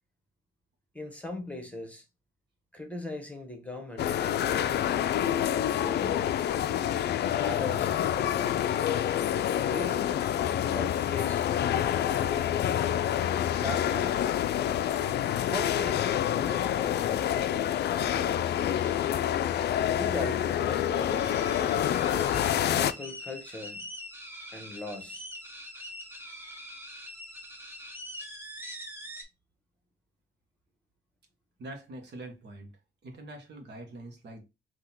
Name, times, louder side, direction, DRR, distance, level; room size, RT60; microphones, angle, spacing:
voice 1, 0.9-2.0 2.7-6.1 7.2-9.1 9.6-10.2 10.7-11.5 11.9-12.5 13.5-14.3 15.5-18.9 19.9-21.4 22.0-22.3 22.6-23.9 24.5-25.3, left 2 dB, 5° left, 1.3 m, -40 dB
sound 1, 4.0-22.9, left 10 dB, 55° left, 0.4 m, -27 dB
sound 2, 20.9-29.2, equal, 10° right, 1.3 m, -43 dB
voice 2, 31.6-32.7 33.0-34.4, right 1 dB, 60° right, 1.4 m, -44 dB
3.8 x 2.9 x 4.3 m
cardioid pair, 90°, 20 cm